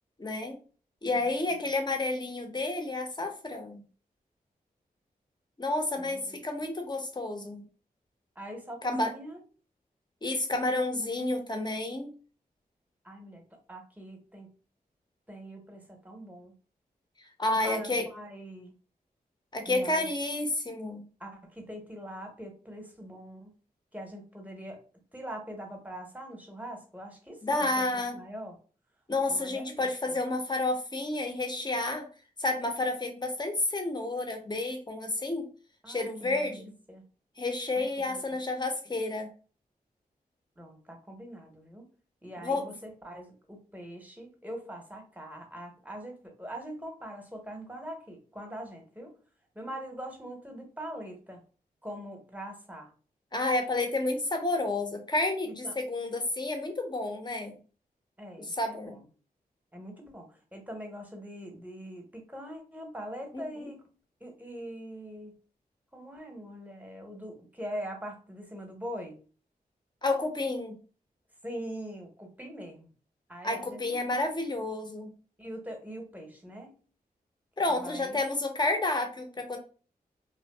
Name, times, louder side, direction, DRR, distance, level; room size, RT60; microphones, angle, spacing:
voice 1, 0.2-0.6 1.0-3.8 5.6-7.6 8.8-9.1 10.2-12.1 17.4-18.1 19.5-21.0 27.4-28.2 29.1-32.1 32.4-35.5 35.9-36.7 37.4-39.3 42.4-42.7 53.3-57.6 58.4-59.0 63.3-63.4 70.0-70.7 73.4-75.1 77.6-79.6, left 2 dB, 25° left, 4 dB, 0.7 m, -30 dB
voice 2, 6.0-6.4 8.4-9.4 13.0-13.4 13.7-14.5 15.3-16.5 17.5-18.7 19.7-20.1 21.2-23.5 23.9-24.8 25.1-28.6 29.3-30.2 35.8-37.0 37.8-38.3 40.6-41.8 42.2-49.2 49.5-51.4 51.8-52.9 55.5-55.7 58.2-59.0 59.7-63.9 64.2-65.3 65.9-69.2 71.4-72.9 73.3-74.0 75.4-76.8 77.7-78.2, equal, 10° right, 3 dB, 0.9 m, -42 dB
2.5 x 2.2 x 2.2 m, 0.37 s
cardioid pair, 40°, 16 cm